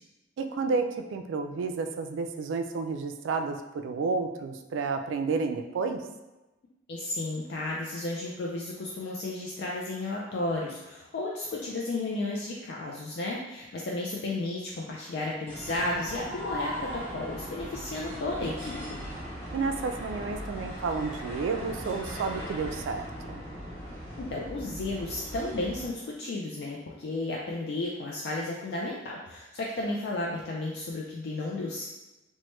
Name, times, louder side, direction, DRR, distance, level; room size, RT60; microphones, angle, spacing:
voice 1, 0.4-6.0 19.5-23.4, right 4 dB, 90° right, 7 dB, 0.3 m, -31 dB
voice 2, 6.9-19.0 24.3-31.9, left 2 dB, 60° left, -3 dB, 0.3 m, -33 dB
sound 1, 15.5-25.9, equal, 15° left, 1.0 m, -39 dB
3.1 x 2.1 x 3.0 m, 1.0 s
head